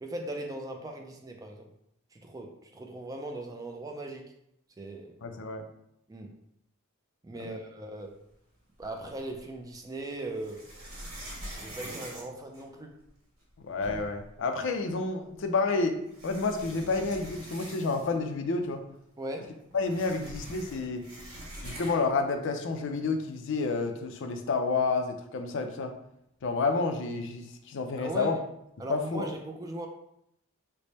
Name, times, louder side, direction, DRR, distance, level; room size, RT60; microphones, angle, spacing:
voice 1, 0.0-1.7 2.1-4.2 4.8-5.2 6.1-6.3 7.2-8.2 8.8-10.7 11.6-13.0 19.2-19.5 28.0-28.4 28.8-29.9, right 2 dB, 15° right, 2 dB, 0.3 m, -39 dB
voice 2, 5.2-5.6 7.4-7.6 13.6-16.0 16.2-18.8 19.7-21.0 21.6-25.9 26.4-28.4 28.9-29.3, left 3 dB, 55° left, 5 dB, 0.4 m, -29 dB
sound 1, 8.8-9.5 10.3-13.1 13.5-13.6 13.8-14.3 15.4-15.5 16.1-18.3 18.6-18.7 19.0-22.2, right 1 dB, 65° right, 1.4 m, -44 dB
3.3 x 2.1 x 4.0 m, 0.77 s
head